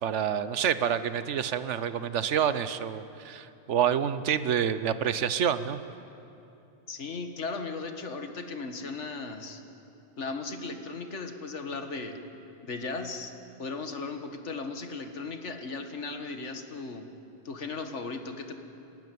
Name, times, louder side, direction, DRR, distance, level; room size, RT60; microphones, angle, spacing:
voice 1, 0.0-5.8, right 8 dB, 90° right, 13 dB, 1.2 m, -28 dB
voice 2, 6.9-9.6 10.2-12.2 12.6-13.3 13.6-17.1 17.5-18.5, left 4 dB, 85° left, 6 dB, 1.9 m, -36 dB
29.0 x 12.5 x 9.4 m, 2.8 s
omnidirectional pair, 1.2 m